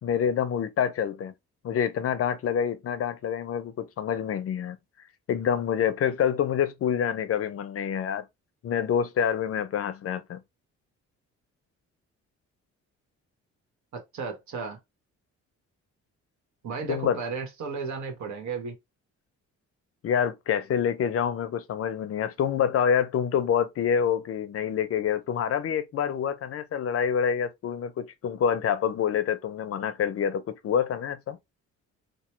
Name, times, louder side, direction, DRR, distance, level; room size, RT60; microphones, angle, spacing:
voice 1, 0.0-1.3 1.6-4.8 5.3-8.2 8.6-10.4 16.9-17.2 20.0-31.4, left 8 dB, 50° left, 0.5 m, -27 dB
voice 2, 13.9-14.8 16.6-18.7, right 5 dB, 70° right, 1.3 m, -34 dB
2.9 x 2.0 x 3.0 m
cardioid pair, 90°, 30 cm